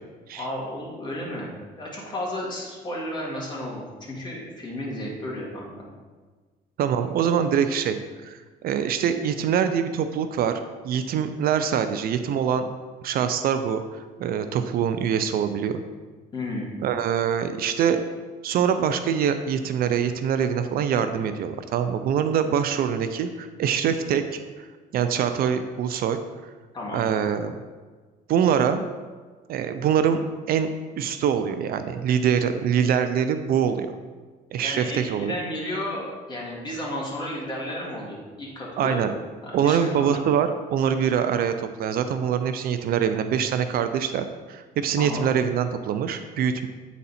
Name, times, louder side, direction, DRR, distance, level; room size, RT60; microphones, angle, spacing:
voice 1, 0.3-1.5 1.8-5.8 16.3-16.8 26.7-27.1 34.6-39.0 39.4-40.2 45.0-45.2, left 1 dB, 25° left, -4 dB, 2.2 m, -33 dB
voice 2, 6.8-8.0 8.2-10.5 10.8-12.7 13.0-15.8 16.8-18.0 18.4-24.2 24.6-24.7 24.9-26.2 26.9-27.5 28.3-28.8 29.5-30.2 30.5-33.9 34.5-35.3 38.8-39.1 39.5-46.7, right 8 dB, 60° right, 9 dB, 0.5 m, -24 dB
8.5 x 4.1 x 4.2 m, 1.4 s
cardioid pair, 110°, 17 cm